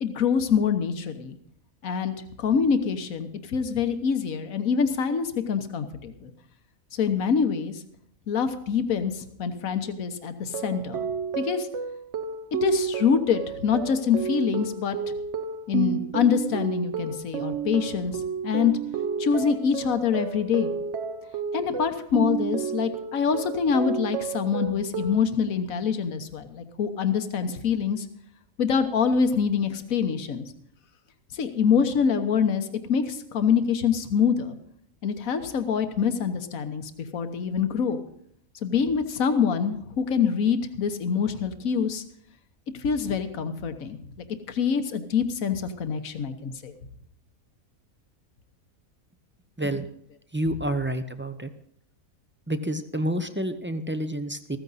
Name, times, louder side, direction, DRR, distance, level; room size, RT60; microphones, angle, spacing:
voice 1, 0.0-1.4 1.8-6.3 6.9-7.7 8.3-11.0 11.3-11.7 12.6-15.0 15.7-18.7 19.2-20.7 21.5-28.0 28.6-30.5 31.3-34.6 35.0-38.0 38.6-42.0 42.8-44.0 44.5-46.7, left 6 dB, 80° left, 8 dB, 1.5 m, -25 dB
sound 1, 10.4-25.3, right 6 dB, 60° right, 1.1 m, -31 dB
voice 2, 49.6-49.9 50.3-51.5 52.5-54.6, right 1 dB, 15° right, 9 dB, 0.4 m, -29 dB
14.5 x 14.0 x 4.0 m, 0.68 s
omnidirectional pair, 1.4 m